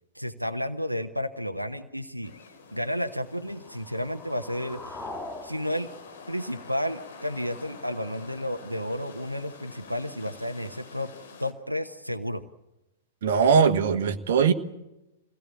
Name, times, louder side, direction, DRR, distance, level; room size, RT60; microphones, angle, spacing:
voice 1, 0.1-2.3 2.7-5.1 5.4-5.9 6.3-11.1 11.4-12.4, equal, 90° right, 7 dB, 1.0 m, -32 dB
sound 1, 2.2-11.5, left 4 dB, 55° left, 2.8 m, -47 dB
sound 2, 3.4-7.4, left 2 dB, 10° left, 2.1 m, -43 dB
voice 2, 13.2-14.5, right 6 dB, 55° right, 8 dB, 1.4 m, -20 dB
23.0 x 17.5 x 8.6 m, 0.96 s
figure-of-eight pair, 100°, 0 cm